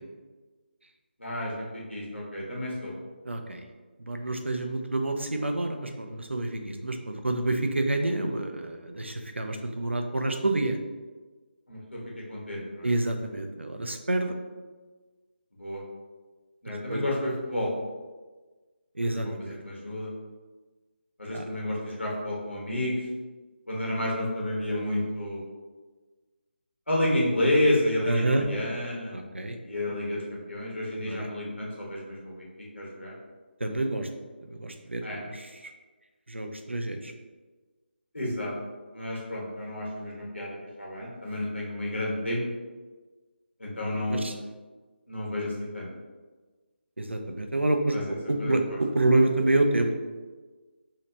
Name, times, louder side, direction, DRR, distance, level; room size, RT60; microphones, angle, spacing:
voice 1, 1.2-2.9 11.7-12.0 12.3-12.9 15.6-15.8 16.6-17.7 19.0-19.3 19.6-20.1 21.2-22.9 23.7-25.4 26.9-29.1 29.6-32.5 32.7-33.1 35.0-35.2 38.1-38.5 38.9-42.4 43.6-44.3 45.1-45.9 47.9-48.8, left 1 dB, 80° left, -4 dB, 1.1 m, -30 dB
voice 2, 3.2-3.6 4.0-10.8 12.8-14.3 16.9-17.0 19.0-19.6 21.3-21.5 28.1-28.4 29.1-29.6 31.0-31.3 33.6-34.1 34.6-35.0 35.3-35.5 36.3-37.1 44.1-44.3 47.0-47.9 48.3-49.9, right 2 dB, 80° right, 4 dB, 0.5 m, -28 dB
2.9 x 2.8 x 3.3 m, 1.3 s
figure-of-eight pair, 155°, 6 cm